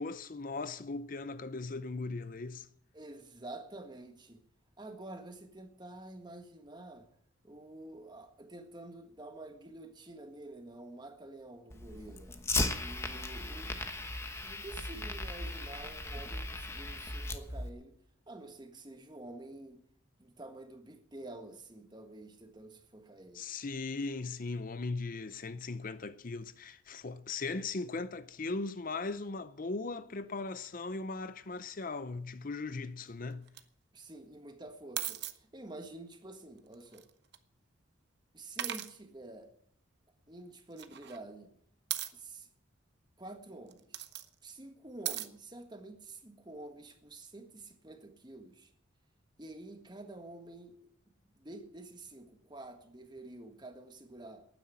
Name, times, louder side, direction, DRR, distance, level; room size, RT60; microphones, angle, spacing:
voice 1, 0.0-2.7 23.3-33.4, left 3 dB, 40° left, 0.6 m, -38 dB
voice 2, 2.9-4.4 4.8-7.1 7.4-12.4 12.7-13.8 14.4-18.0 18.3-19.8 20.2-23.4 33.9-37.1 38.3-39.5 40.3-41.5 42.1-42.5 43.2-44.1 44.4-48.7 49.4-50.9 51.3-54.4, right 2 dB, 20° right, 1.6 m, -49 dB
Fire, 11.7-17.7, left 2 dB, 15° left, 1.1 m, -37 dB
sound 1, 33.3-33.6 35.0-35.4 36.7-37.4 38.6-38.9 40.8-41.2 41.9-42.1 43.7-44.3 45.1-45.3, right 12 dB, 55° right, 0.9 m, -37 dB
11.5 x 9.7 x 9.0 m
head